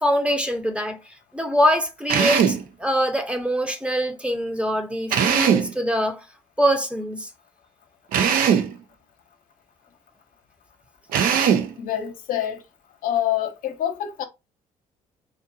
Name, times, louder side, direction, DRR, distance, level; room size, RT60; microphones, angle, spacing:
voice 1, 0.0-1.0 1.3-6.2 6.6-7.3, equal, 5° right, 0.7 m, -23 dB
Drill, 2.1-2.6 5.1-5.7 8.1-8.7 11.1-11.7, right 8 dB, 65° right, 0.5 m, -20 dB
voice 2, 11.8-12.6 13.0-14.2, left 11 dB, 65° left, 0.7 m, -26 dB
2.7 x 2.4 x 2.6 m
hypercardioid pair, 60°, 16 cm